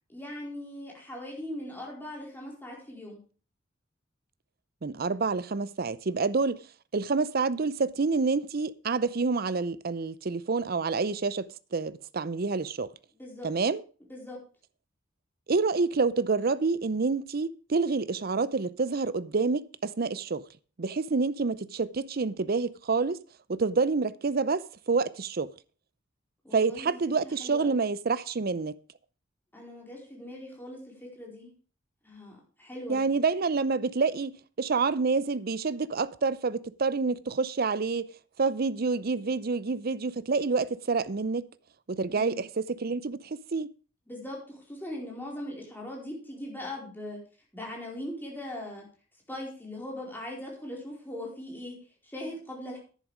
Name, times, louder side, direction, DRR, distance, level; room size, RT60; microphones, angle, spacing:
voice 1, 0.1-3.2 13.2-13.5 14.1-14.4 26.4-26.9 27.2-27.8 29.5-31.5 32.0-33.0 42.1-42.4 44.1-47.2 47.5-48.8 49.3-51.8 52.0-52.8, left 1 dB, 10° left, 4.5 m, -40 dB
voice 2, 4.8-6.6 6.9-11.5 11.7-12.9 13.4-13.8 15.5-20.4 20.8-23.2 23.5-25.5 26.5-28.7 32.9-38.0 38.4-41.5 41.9-43.7, right 4 dB, 50° right, 0.6 m, -28 dB
10.5 x 10.5 x 5.0 m
head